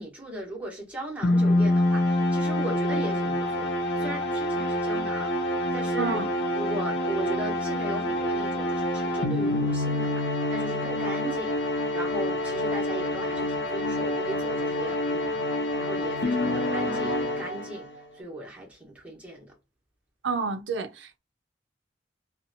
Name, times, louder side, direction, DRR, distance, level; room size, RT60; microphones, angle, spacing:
voice 1, 0.0-15.4 15.8-19.5, right 1 dB, 10° right, 1.0 m, -38 dB
sound 1, 1.2-18.0, left 1 dB, 70° left, 0.5 m, -27 dB
voice 2, 6.0-6.3 20.2-21.2, right 4 dB, 85° right, 0.4 m, -29 dB
2.8 x 2.2 x 2.6 m
head